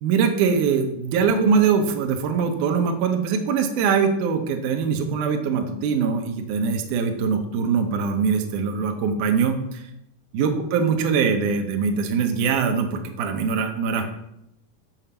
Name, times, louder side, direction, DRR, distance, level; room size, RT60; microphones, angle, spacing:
voice 1, 0.0-9.8 10.3-14.0, right 6 dB, 75° right, 5 dB, 2.3 m, -22 dB
7.4 x 5.6 x 6.8 m, 0.81 s
omnidirectional pair, 3.8 m